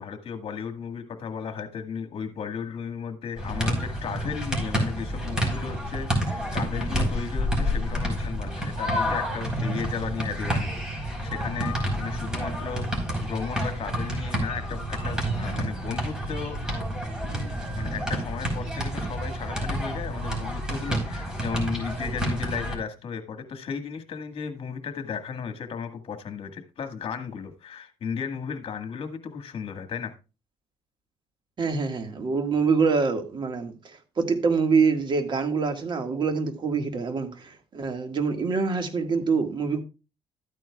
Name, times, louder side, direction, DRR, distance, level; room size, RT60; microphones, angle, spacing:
voice 1, 0.0-16.6 17.7-30.1, left 6 dB, 55° left, 1.7 m, -35 dB
sound 1, 3.4-22.8, equal, 5° right, 3.9 m, -29 dB
voice 2, 31.6-39.8, right 5 dB, 40° right, 1.8 m, -25 dB
13.0 x 9.1 x 2.3 m
cardioid pair, 110°, 12 cm